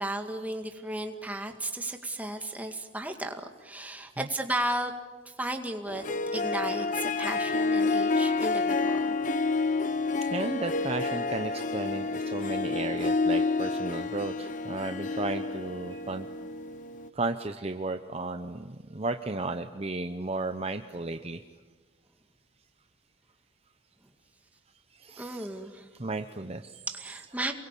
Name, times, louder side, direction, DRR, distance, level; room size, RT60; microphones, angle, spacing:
voice 1, 0.0-4.9 5.3-6.0 6.3-9.2 25.2-25.9 26.9-27.5, right 1 dB, 10° right, 5 dB, 2.0 m, -34 dB
Harp, 5.9-17.1, left 3 dB, 40° left, 0.9 m, -29 dB
voice 2, 10.3-16.3 17.2-21.4 25.0-25.6 26.0-26.7 27.2-27.5, right 2 dB, 30° right, 7 dB, 0.8 m, -34 dB
28.5 x 22.5 x 8.4 m, 1.3 s
head